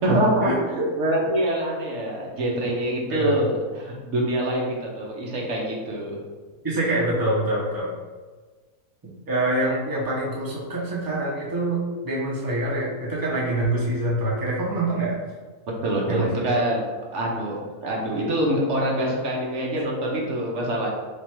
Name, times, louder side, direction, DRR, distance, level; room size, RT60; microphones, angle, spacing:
voice 1, 0.0-6.2 15.8-16.9 17.1-17.6 17.8-20.9, right 1 dB, 55° right, -2 dB, 0.9 m, -25 dB
voice 2, 6.6-7.9 9.3-15.2 16.1-16.3, right 2 dB, 20° right, -6 dB, 0.6 m, -25 dB
3.2 x 2.5 x 4.4 m, 1.4 s
omnidirectional pair, 1.6 m